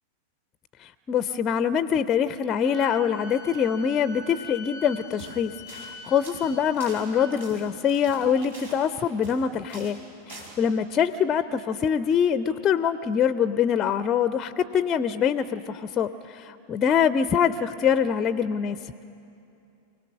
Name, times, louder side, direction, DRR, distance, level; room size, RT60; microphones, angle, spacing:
voice 1, 0.8-10.0 10.3-18.8, left 7 dB, 25° left, 14 dB, 0.4 m, -24 dB
Wind instrument woodwind instrument, 2.6-7.4, left 1 dB, 50° right, 1.8 m, -43 dB
sound 1, 5.1-5.4 5.7-5.9 6.2-9.4 9.7-10.0 10.3-10.5, right 2 dB, 70° right, 4.8 m, -44 dB
25.0 x 18.0 x 6.4 m, 2.7 s
figure-of-eight pair, 90°, 0 cm